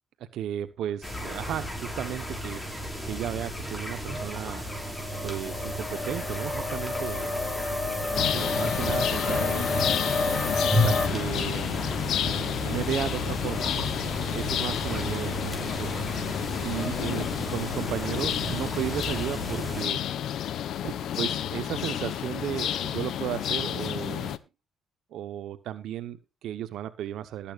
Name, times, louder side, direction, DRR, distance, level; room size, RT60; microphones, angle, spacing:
voice 1, 0.3-2.6 3.0-4.7 5.2-10.3 10.8-13.9 14.3-16.0 16.6-20.0 20.8-24.4 25.1-27.5, right 11 dB, 80° right, 11 dB, 1.0 m, -35 dB
sound 1, 1.0-19.8, equal, 10° left, 5.7 m, -33 dB
sound 2, 4.6-11.1, left 3 dB, 30° left, 5.1 m, -30 dB
sound 3, 8.1-24.4, left 10 dB, 75° left, 0.9 m, -31 dB
20.5 x 8.7 x 2.5 m, 0.28 s
cardioid pair, 90°, 0 cm